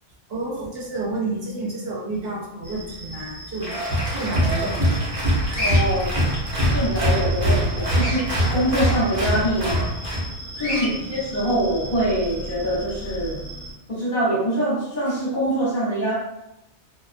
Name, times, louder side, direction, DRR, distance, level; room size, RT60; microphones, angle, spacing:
voice 1, 0.3-5.0 10.7-10.8, right 2 dB, 60° right, -3 dB, 0.9 m, -30 dB
sound 1, 2.6-13.7, equal, 25° left, 1.1 m, -36 dB
Applause, 3.6-10.3, equal, 35° right, 0.7 m, -23 dB
Bird vocalization bird call bird song, 5.5-5.8 7.9-8.2 10.6-10.9, left 1 dB, 10° right, 0.9 m, -27 dB
voice 2, 5.6-6.1 6.7-9.9 10.6-13.4 13.9-16.1, right 1 dB, 50° left, -7 dB, 1.0 m, -24 dB
2.4 x 2.2 x 2.4 m, 0.89 s
omnidirectional pair, 1.1 m